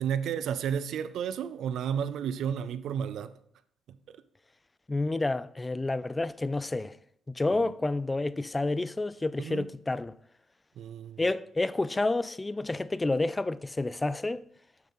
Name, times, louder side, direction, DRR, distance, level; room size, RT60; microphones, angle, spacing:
voice 1, 0.0-3.3 7.6-7.7 9.4-9.6 10.8-11.2, right 8 dB, 75° right, 0.4 m, -32 dB
voice 2, 4.9-7.0 7.3-10.1 11.2-14.4, left 2 dB, 20° left, 0.3 m, -29 dB
6.6 x 6.4 x 3.9 m
cardioid pair, 90°, 0 cm